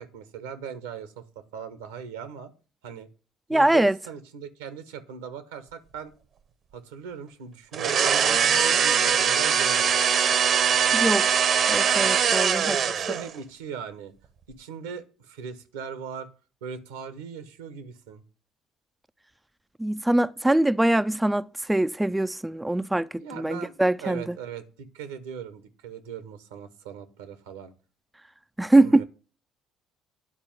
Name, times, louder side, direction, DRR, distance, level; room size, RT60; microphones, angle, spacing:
voice 1, 0.0-2.5 2.8-3.1 3.5-6.1 6.7-10.1 12.6-14.1 14.6-16.3 16.6-18.2 23.2-27.7 28.8-29.0, right 7 dB, 80° right, 1.0 m, -39 dB
voice 2, 3.5-4.0 10.9-12.8 19.8-24.2 28.6-29.0, right 1 dB, 10° right, 0.4 m, -23 dB
sound 1, 7.7-13.3, right 7 dB, 55° right, 0.8 m, -22 dB
9.9 x 4.3 x 7.2 m
hypercardioid pair, 55°, 0 cm